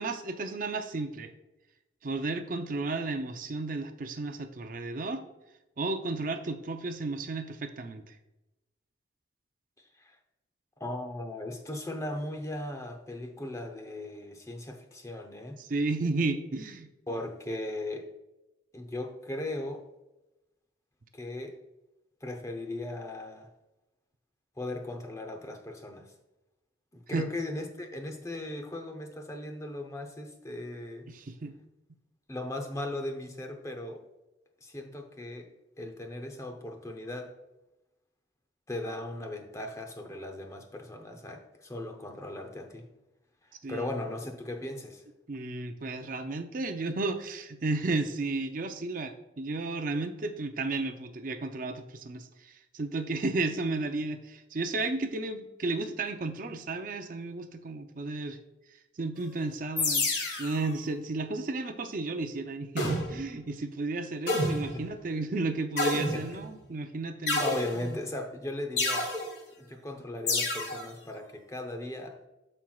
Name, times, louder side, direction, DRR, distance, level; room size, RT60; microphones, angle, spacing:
voice 1, 0.0-1.3 2.0-5.3 5.8-8.2 15.6-16.9 27.1-27.3 31.1-31.5 43.6-43.9 45.3-58.4 59.0-60.1 60.4-67.4, right 3 dB, 45° right, 7 dB, 0.5 m, -33 dB
voice 2, 10.8-15.6 17.1-18.1 18.7-19.8 21.1-21.6 22.2-23.5 24.6-26.1 26.9-31.1 32.3-34.0 34.6-35.5 35.8-37.3 38.7-42.9 43.7-45.0 64.7-64.8 66.1-66.2 67.4-69.1 69.6-72.2, left 1 dB, 15° left, 4 dB, 0.7 m, -37 dB
sound 1, 59.8-60.6 62.8-63.3 64.3-64.8 65.8-66.5 67.3-68.0 68.8-69.3 70.3-70.8, left 2 dB, 55° left, 1.9 m, -29 dB
13.0 x 4.4 x 2.3 m, 0.98 s
head